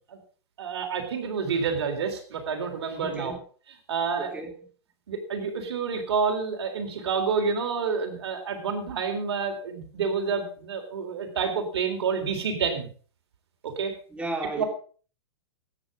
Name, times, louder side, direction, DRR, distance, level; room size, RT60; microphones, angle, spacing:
voice 1, 0.6-3.3 3.9-4.3 5.1-12.9 13.6-13.9 14.6-14.7, right 5 dB, 75° right, 5 dB, 3.8 m, -28 dB
voice 2, 3.0-3.4 4.2-4.6 14.1-14.6, right 2 dB, 10° right, 3 dB, 2.9 m, -34 dB
14.0 x 9.6 x 5.1 m, 0.41 s
hypercardioid pair, 125°, 14 cm